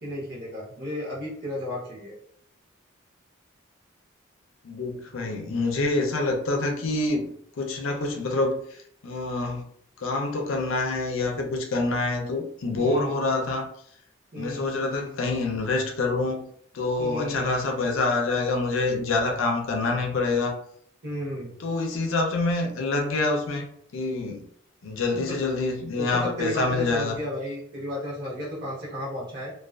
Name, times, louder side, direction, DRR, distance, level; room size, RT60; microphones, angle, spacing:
voice 1, 0.0-2.1 12.7-13.1 14.3-14.8 17.0-17.5 21.0-21.6 25.1-25.4 26.0-29.5, equal, 50° right, 0.8 m, -33 dB
voice 2, 4.6-7.2 7.6-9.6 10.0-13.7 14.4-16.4 16.7-20.5 21.6-23.7 23.9-24.4 24.8-27.2, left 3 dB, 80° left, 0.5 m, -26 dB
2.3 x 2.3 x 2.3 m
head